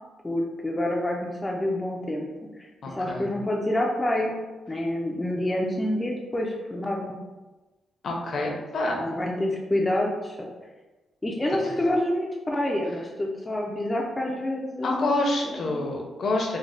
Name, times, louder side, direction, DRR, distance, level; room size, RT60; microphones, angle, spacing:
voice 1, 0.2-2.3 2.6-4.4 4.7-7.2 9.0-10.4 11.2-15.2 15.4-15.8, left 1 dB, 15° left, -1 dB, 0.3 m, -27 dB
voice 2, 2.8-3.3 8.0-9.0 11.6-11.8 14.8-16.6, left 2 dB, 55° left, 0 dB, 0.6 m, -27 dB
3.2 x 2.0 x 3.7 m, 1.2 s
cardioid pair, 135°, 0 cm